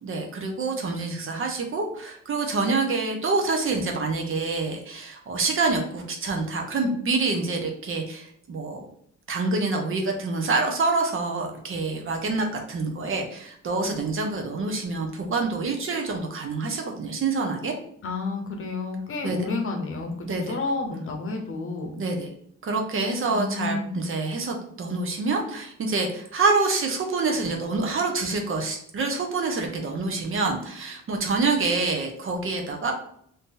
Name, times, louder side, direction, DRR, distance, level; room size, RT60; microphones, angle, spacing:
voice 1, 0.0-8.8 9.3-17.7 19.2-19.4 20.2-20.6 22.0-22.3 22.6-32.9, right 3 dB, 45° right, 2 dB, 0.7 m, -26 dB
voice 2, 18.0-21.9 23.2-23.9, left 3 dB, 45° left, 3 dB, 0.8 m, -30 dB
2.7 x 2.6 x 3.7 m, 0.69 s
cardioid pair, 90°, 30 cm